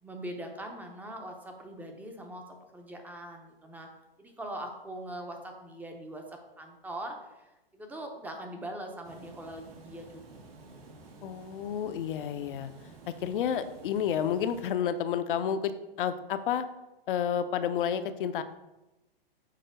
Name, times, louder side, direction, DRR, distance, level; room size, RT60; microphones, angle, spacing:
voice 1, 0.0-3.9 4.2-10.2 10.7-10.9, right 1 dB, 5° right, 3 dB, 0.7 m, -42 dB
Water, 9.0-14.7, right 2 dB, 75° right, 2.0 m, -51 dB
voice 2, 11.2-12.7 13.1-15.7 16.0-16.7 17.1-18.4, left 8 dB, 60° left, 10 dB, 0.7 m, -30 dB
6.7 x 3.8 x 5.1 m, 0.97 s
hypercardioid pair, 140°, 30 cm